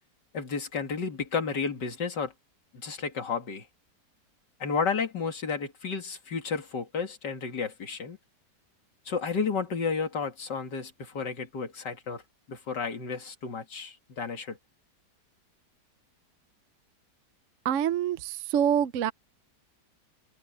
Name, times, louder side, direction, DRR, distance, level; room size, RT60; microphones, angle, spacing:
voice 1, 0.3-2.3 2.8-3.7 4.6-8.2 9.1-12.2 12.5-14.6, left 5 dB, 85° left, 2.8 m, -32 dB
voice 2, 17.6-19.1, right 9 dB, 60° right, 0.9 m, -26 dB
omnidirectional pair, 1.8 m